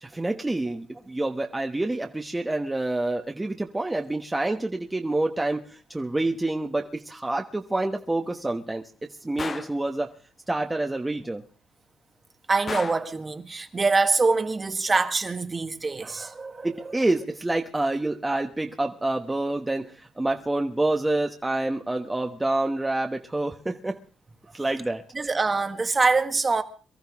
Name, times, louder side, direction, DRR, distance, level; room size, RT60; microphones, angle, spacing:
voice 1, 0.0-8.8 9.2-10.1 10.5-11.4 16.6-24.0 24.5-25.0, right 2 dB, 15° right, 1.2 m, -27 dB
Gunshot gunfire, 9.4-9.8 12.7-13.1, left 5 dB, 40° left, 0.7 m, -33 dB
voice 2, 12.5-17.0 25.1-26.6, right 3 dB, 30° right, 1.6 m, -24 dB
23.5 x 13.5 x 3.6 m
cardioid pair, 90°, 0 cm